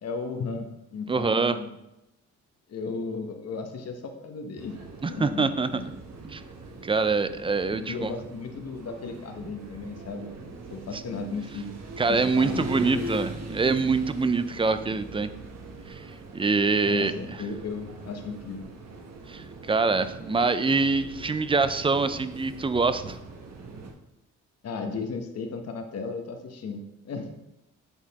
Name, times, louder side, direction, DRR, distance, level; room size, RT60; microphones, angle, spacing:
voice 1, 0.0-1.8 2.7-4.8 5.1-5.5 5.7-5.9 7.7-10.3 10.7-11.7 12.1-13.1 16.8-18.6 24.6-27.3, left 4 dB, 55° left, 5 dB, 1.1 m, -35 dB
voice 2, 1.1-1.6 5.0-5.7 6.2-6.4 6.8-8.1 12.0-15.3 15.9-16.1 16.3-17.1 19.3-23.2, right 4 dB, 20° right, 12 dB, 0.4 m, -25 dB
sound 1, 4.6-23.9, right 2 dB, 60° right, 1.3 m, -41 dB
9.0 x 4.0 x 4.1 m, 0.91 s
cardioid pair, 90°, 30 cm